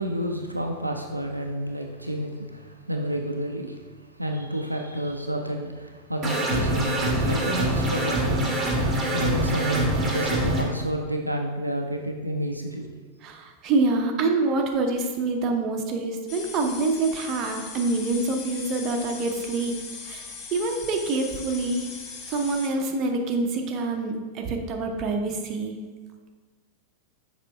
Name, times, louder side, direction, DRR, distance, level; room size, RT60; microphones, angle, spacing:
voice 1, 0.0-3.8 4.2-8.6 9.1-12.9, equal, 85° right, 2 dB, 0.5 m, -30 dB
sound 1, 6.2-10.6, right 1 dB, 15° right, 1.4 m, -25 dB
voice 2, 13.2-19.7 20.0-20.2 20.5-21.9 22.3-25.8, right 3 dB, 35° right, 3 dB, 0.7 m, -26 dB
sound 2, 16.3-22.7, left 5 dB, 35° left, 0.8 m, -39 dB
6.6 x 4.4 x 3.5 m, 1.4 s
figure-of-eight pair, 90°, 0 cm